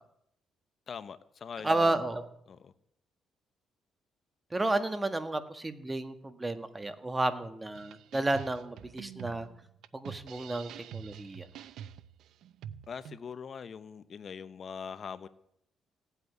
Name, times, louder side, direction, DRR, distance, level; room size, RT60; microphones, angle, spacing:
voice 1, 0.9-1.9 2.5-2.7 12.9-15.3, left 6 dB, 50° left, 14 dB, 0.8 m, -42 dB
voice 2, 1.6-2.3 4.5-9.5 9.9-11.5, right 2 dB, 20° right, 10 dB, 1.6 m, -32 dB
sound 1, 7.7-13.2, right 9 dB, 80° right, 0.7 m, -46 dB
17.0 x 8.2 x 9.5 m, 0.75 s
cardioid pair, 90°, 0 cm